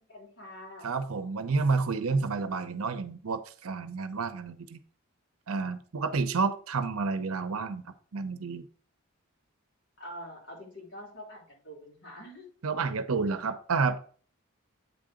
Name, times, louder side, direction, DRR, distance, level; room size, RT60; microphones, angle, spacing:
voice 1, 0.1-0.9 10.0-12.5, equal, 50° left, -4 dB, 3.7 m, -45 dB
voice 2, 0.8-4.8 5.5-8.7 12.6-14.0, right 4 dB, 80° right, 10 dB, 0.7 m, -30 dB
8.2 x 3.8 x 5.0 m, 0.43 s
head